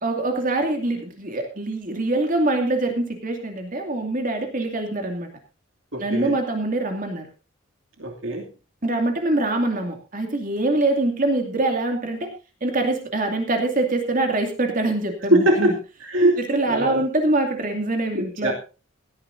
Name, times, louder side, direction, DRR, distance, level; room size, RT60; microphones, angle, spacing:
voice 1, 0.0-5.3 6.0-7.2 8.8-12.3 12.6-15.7 16.4-18.5, right 2 dB, 40° right, 4 dB, 2.5 m, -24 dB
voice 2, 5.9-6.4 8.0-8.5 15.3-15.7 16.0-16.4 16.7-17.0 18.1-18.5, right 1 dB, 65° right, 1 dB, 2.7 m, -21 dB
18.0 x 14.0 x 2.7 m, 0.31 s
head